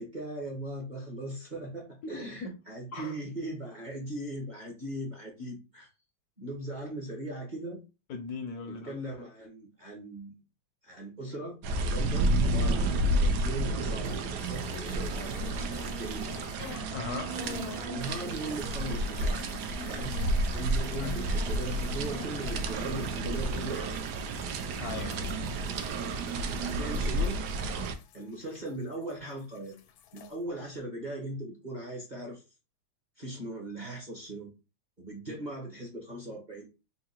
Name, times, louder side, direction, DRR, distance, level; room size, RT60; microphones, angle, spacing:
voice 1, 0.0-5.9 6.4-7.8 8.7-10.3 10.8-16.3 17.8-19.4 19.8-20.1 20.5-24.0 24.7-25.9 26.5-27.4 28.1-29.8 30.1-32.4 33.2-34.5 35.0-36.7, right 1 dB, 35° right, 0.8 m, -39 dB
voice 2, 8.1-9.0 16.9-17.4 21.0-21.1 24.8-25.2 35.3-35.4, left 4 dB, 70° left, 0.9 m, -38 dB
sound 1, 11.6-27.9, right 2 dB, 70° right, 1.0 m, -31 dB
sound 2, 14.0-16.9 17.2-29.1 29.4-30.3, left 7 dB, 85° left, 1.4 m, -47 dB
3.7 x 2.5 x 4.3 m
omnidirectional pair, 2.2 m